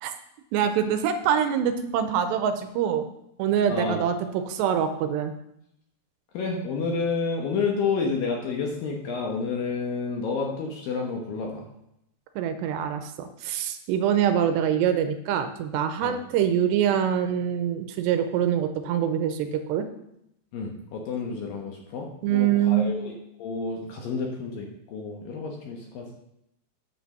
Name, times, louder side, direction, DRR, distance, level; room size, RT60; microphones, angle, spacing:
voice 1, 0.5-3.0 3.4-5.3 12.4-19.9 22.2-23.0, right 9 dB, 85° right, 9 dB, 2.7 m, -24 dB
voice 2, 3.7-4.0 6.3-11.7 16.0-16.2 20.5-23.1 23.4-26.2, left 4 dB, 70° left, 1 dB, 2.4 m, -30 dB
9.3 x 5.3 x 6.6 m, 0.80 s
omnidirectional pair, 5.1 m